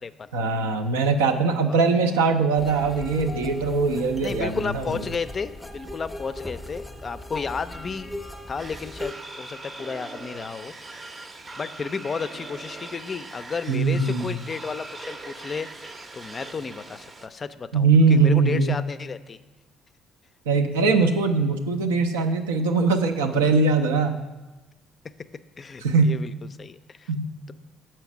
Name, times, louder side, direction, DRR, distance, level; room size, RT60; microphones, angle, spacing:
voice 1, 0.3-4.9 13.7-14.4 17.7-18.8 20.5-24.2 25.8-26.2 27.1-27.2, right 4 dB, 85° right, 6 dB, 0.5 m, -21 dB
sound 1, 2.6-9.1, left 1 dB, 5° left, 0.7 m, -38 dB
voice 2, 4.2-8.1 8.5-11.2 11.6-19.4 25.6-26.3 26.6-27.1, left 5 dB, 40° left, 12 dB, 0.4 m, -33 dB
sound 2, 8.6-17.3, right 2 dB, 35° right, 0.6 m, -41 dB
7.1 x 4.4 x 5.9 m, 1.2 s
hypercardioid pair, 55°, 0 cm